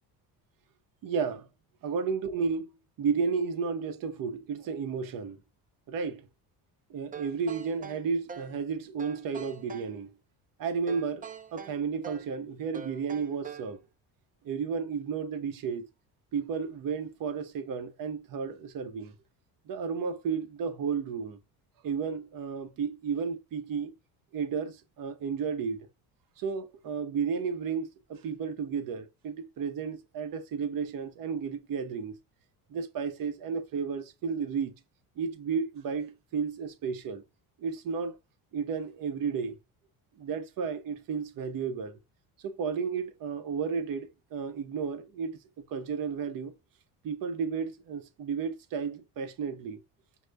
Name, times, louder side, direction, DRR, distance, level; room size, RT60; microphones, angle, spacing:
voice 1, 1.0-1.5 1.8-2.7 3.0-5.4 5.9-6.3 6.9-10.1 10.6-11.3 11.5-13.8 14.4-15.9 16.3-19.1 19.7-21.4 21.8-23.9 24.3-25.9 26.4-32.2 32.7-34.7 35.2-37.2 37.6-38.2 38.5-39.5 40.2-42.0 42.4-45.4 45.7-46.5 47.0-49.8, right 6 dB, 60° right, 0.9 m, -33 dB
sound 1, 7.1-8.6 9.0-9.9 10.9-12.3 12.7-13.8, right 7 dB, 25° right, 0.4 m, -43 dB
5.3 x 2.3 x 3.3 m
cardioid pair, 120°, 38 cm